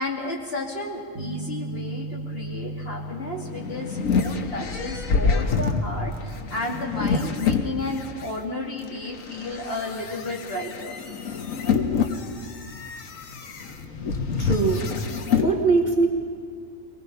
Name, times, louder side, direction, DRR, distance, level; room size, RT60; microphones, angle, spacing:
voice 1, 0.0-11.0, left 2 dB, 45° left, -2 dB, 3.0 m, -32 dB
sound 1, 1.1-5.4, right 2 dB, 80° right, 1.6 m, -36 dB
sound 2, 3.3-8.3 8.9-15.5, left 5 dB, 85° left, 1.6 m, -27 dB
voice 2, 14.4-15.0 15.3-16.1, right 4 dB, 35° right, 1 dB, 1.6 m, -22 dB
23.5 x 20.0 x 5.7 m, 2.3 s
omnidirectional pair, 1.4 m